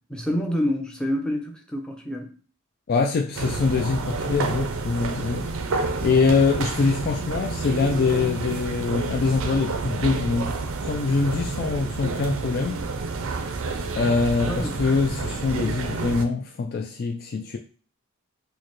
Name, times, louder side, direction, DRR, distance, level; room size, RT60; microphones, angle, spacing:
voice 1, 0.1-2.3 14.5-14.8, equal, 5° left, 0.6 m, -27 dB
voice 2, 2.9-10.6 10.8-12.8 13.9-17.6, left 4 dB, 45° left, 0.3 m, -24 dB
sound 1, 3.3-16.3, right 3 dB, 65° right, 0.5 m, -29 dB
4.6 x 2.1 x 3.0 m
head